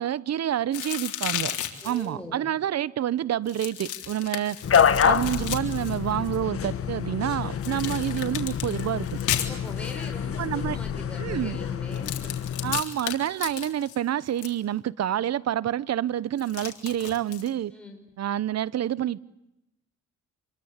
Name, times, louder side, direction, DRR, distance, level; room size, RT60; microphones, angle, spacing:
voice 1, 0.0-1.6 1.8-4.6 5.0-9.1 10.4-10.8 11.2-11.6 12.6-17.7 18.2-19.2, right 11 dB, 60° right, 1.0 m, -28 dB
sound 1, 0.7-2.1 3.5-6.4 7.6-10.1 11.9-14.5 16.4-17.5, left 12 dB, 80° left, 3.7 m, -34 dB
voice 2, 1.8-2.5 9.5-12.3 17.7-18.1, left 1 dB, 5° left, 5.5 m, -42 dB
sound 2, 4.6-12.8, left 8 dB, 50° left, 2.1 m, -27 dB
27.0 x 23.0 x 8.3 m
cardioid pair, 90°, 30 cm